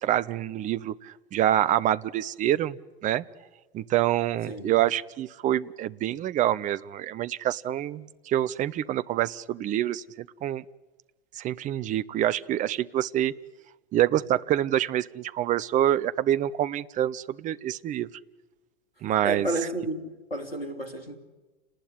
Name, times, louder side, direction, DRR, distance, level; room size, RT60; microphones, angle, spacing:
voice 1, 0.0-2.8 3.0-3.2 3.7-10.6 11.4-13.3 13.9-18.1 19.0-19.5, right 12 dB, 25° right, 0.8 m, -26 dB
voice 2, 19.2-21.2, right 1 dB, 85° left, 3.1 m, -32 dB
29.5 x 19.5 x 9.9 m
figure-of-eight pair, 85°, 29 cm